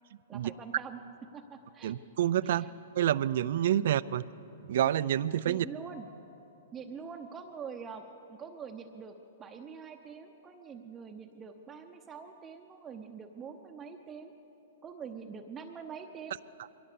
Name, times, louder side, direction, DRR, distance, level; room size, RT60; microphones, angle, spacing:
voice 1, 0.3-1.0 1.3-2.0 2.4-2.7 5.4-6.1 6.7-8.0 8.3-9.1 9.4-14.3 14.8-16.4, right 6 dB, 15° right, 3 dB, 0.8 m, -44 dB
voice 2, 1.8-2.7 3.0-4.2 4.7-5.7, right 11 dB, 65° right, 17 dB, 0.5 m, -28 dB
22.5 x 17.0 x 6.8 m, 3.0 s
hypercardioid pair, 145°, 0 cm